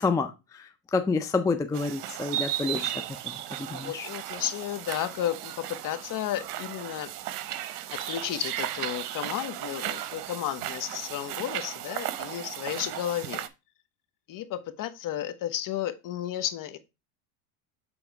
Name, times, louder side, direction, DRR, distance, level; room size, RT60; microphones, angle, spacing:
voice 1, 0.0-4.1, left 4 dB, 10° left, 0.4 m, -29 dB
sound 1, 1.7-13.5, right 13 dB, 85° right, 0.8 m, -35 dB
voice 2, 3.6-7.1 7.9-13.5 14.3-16.8, left 12 dB, 45° left, 1.0 m, -33 dB
7.1 x 3.5 x 4.6 m
supercardioid pair, 110°, 46 cm